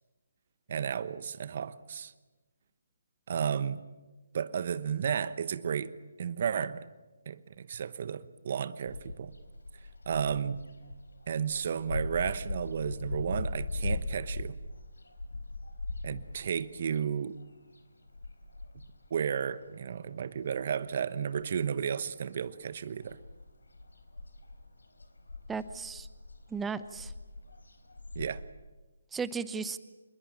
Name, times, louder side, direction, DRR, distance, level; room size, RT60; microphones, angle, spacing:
voice 1, 0.7-2.1 3.3-3.8 4.3-6.9 7.3-9.3 10.1-10.6 11.3-14.5 16.0-17.4 19.1-23.2 28.1-28.4, right 7 dB, 45° right, 1.1 m, -33 dB
sound 1, 8.9-20.5 20.7-22.1 22.3-28.5, left 2 dB, 80° left, 4.1 m, -40 dB
voice 2, 25.5-26.1 26.5-27.1 29.1-29.8, right 5 dB, 5° right, 0.9 m, -35 dB
26.5 x 21.5 x 8.8 m
figure-of-eight pair, 150°, 0 cm